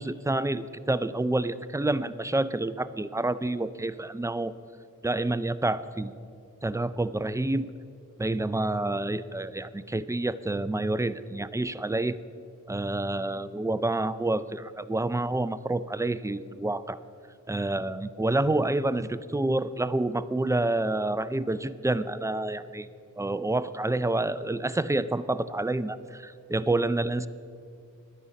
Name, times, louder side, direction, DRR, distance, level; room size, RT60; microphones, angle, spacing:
voice 1, 0.0-4.5 5.0-6.2 6.6-7.7 8.2-12.2 12.7-17.0 17.5-22.9 23.2-27.3, right 2 dB, 10° right, 14 dB, 0.3 m, -28 dB
12.0 x 9.7 x 5.2 m, 2.4 s
wide cardioid pair, 55°, 31 cm